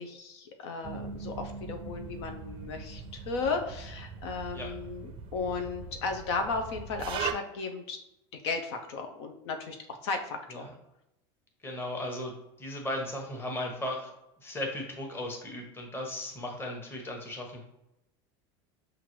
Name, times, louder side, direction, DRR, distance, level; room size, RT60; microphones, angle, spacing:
voice 1, 0.0-8.0 8.4-9.8 10.0-10.7, left 4 dB, 75° left, 5 dB, 0.6 m, -35 dB
sound 1, 0.8-7.3, right 7 dB, 40° right, 0.4 m, -40 dB
voice 2, 11.6-14.1 14.4-17.6, left 1 dB, 15° left, 1 dB, 1.0 m, -36 dB
5.8 x 2.5 x 3.0 m, 0.86 s
supercardioid pair, 120°, 14 cm